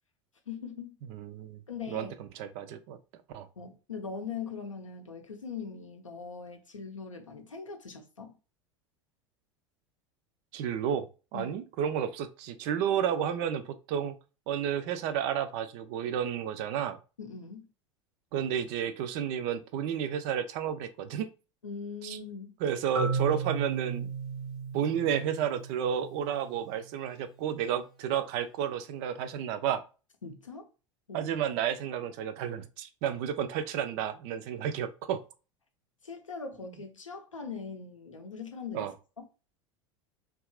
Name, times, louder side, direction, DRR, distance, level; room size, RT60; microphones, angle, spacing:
voice 1, 0.5-1.0 1.7-2.1 3.6-8.4 11.3-11.6 17.2-17.6 21.6-22.6 30.2-30.7 31.1-31.4 36.0-38.9, left 5 dB, 80° left, 0.6 m, -41 dB
voice 2, 1.1-1.6 1.9-3.0 3.3-3.5 10.5-14.1 14.5-17.0 18.3-21.3 22.0-22.2 22.6-24.1 24.7-29.8 31.1-35.2 38.7-38.9, right 9 dB, 45° right, 0.4 m, -31 dB
Marimba xylophone, 22.9-26.8, right 5 dB, ahead, 0.6 m, -35 dB
2.8 x 2.3 x 2.3 m
figure-of-eight pair, 80°, 16 cm